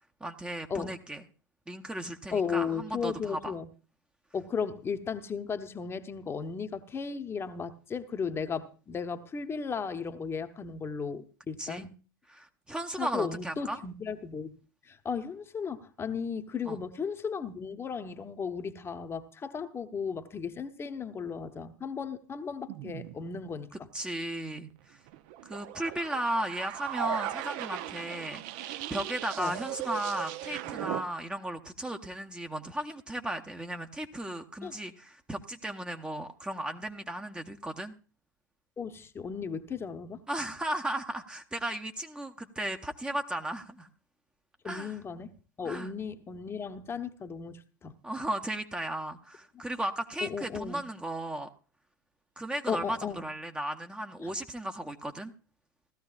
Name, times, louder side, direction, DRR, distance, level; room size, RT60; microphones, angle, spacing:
voice 1, 0.2-1.2 1.7-3.5 11.6-11.9 12.3-13.8 16.7-16.8 23.9-25.0 25.4-37.9 40.3-43.9 44.6-44.9 45.6-45.9 48.0-51.5 52.4-55.3, right 1 dB, 10° right, 0.9 m, -35 dB
voice 2, 2.3-3.7 4.3-11.9 13.0-14.6 14.8-23.7 29.4-29.6 34.6-34.7 38.8-40.2 44.6-48.0 50.2-50.8 52.7-53.2 54.2-54.3, left 6 dB, 25° left, 1.0 m, -35 dB
sound 1, 22.7-23.4 25.1-31.0, right 13 dB, 55° right, 0.7 m, -38 dB
17.0 x 13.5 x 2.5 m
figure-of-eight pair, 80°, 11 cm